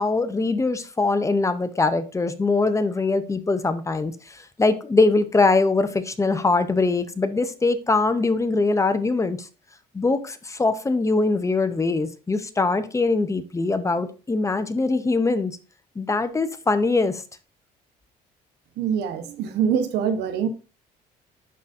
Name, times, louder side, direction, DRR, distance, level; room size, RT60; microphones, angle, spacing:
voice 1, 0.0-9.5 9.9-15.5 16.0-17.2, left 3 dB, 20° left, 0.7 m, -22 dB
voice 2, 18.8-20.5, right 7 dB, 80° right, 1.1 m, -24 dB
11.0 x 4.0 x 2.7 m
cardioid pair, 110°, 17 cm